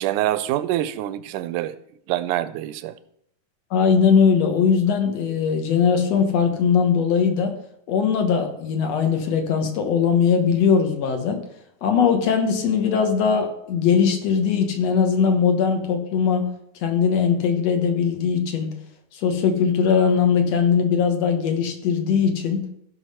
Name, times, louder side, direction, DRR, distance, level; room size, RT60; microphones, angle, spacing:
voice 1, 0.0-1.8 2.1-2.9, right 14 dB, 85° right, 2.1 m, -25 dB
voice 2, 3.7-7.5 7.9-11.4 11.8-16.5 16.8-18.7 19.1-22.6, left 6 dB, 60° left, 2.2 m, -20 dB
14.5 x 5.8 x 5.5 m
omnidirectional pair, 3.6 m